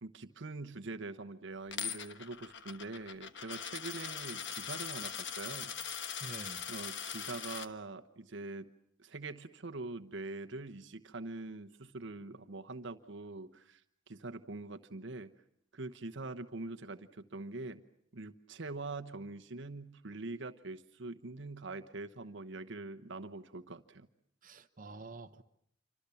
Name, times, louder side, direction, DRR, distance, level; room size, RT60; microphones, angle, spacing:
voice 1, 0.0-5.7 6.1-6.2 6.7-8.7 9.0-13.8 14.1-15.3 15.7-17.8 18.1-24.1, right 3 dB, 65° right, 1.1 m, -44 dB
Coin (dropping), 1.7-7.7, left 8 dB, 65° left, 1.3 m, -41 dB
voice 2, 6.2-6.6 24.4-25.4, right 3 dB, 45° right, 1.2 m, -47 dB
28.0 x 25.5 x 7.1 m
head